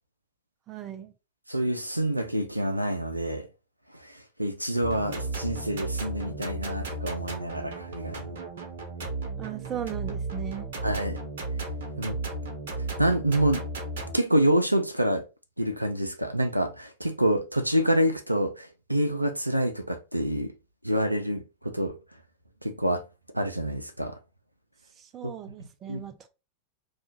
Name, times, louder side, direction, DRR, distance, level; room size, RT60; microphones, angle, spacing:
voice 1, 0.7-1.1 9.4-10.7 25.0-26.3, right 10 dB, 30° right, 0.4 m, -37 dB
voice 2, 1.5-3.5 4.0-8.4 10.8-11.2 12.0-12.2 13.0-13.7 14.1-15.2 15.6-20.5 20.8-21.9 22.6-23.0 23.3-24.2 25.9-26.0, right 1 dB, 90° right, 0.4 m, -27 dB
sound 1, 4.8-14.1, right 2 dB, 60° right, 0.7 m, -34 dB
2.8 x 2.3 x 4.0 m
figure-of-eight pair, 90°, 0 cm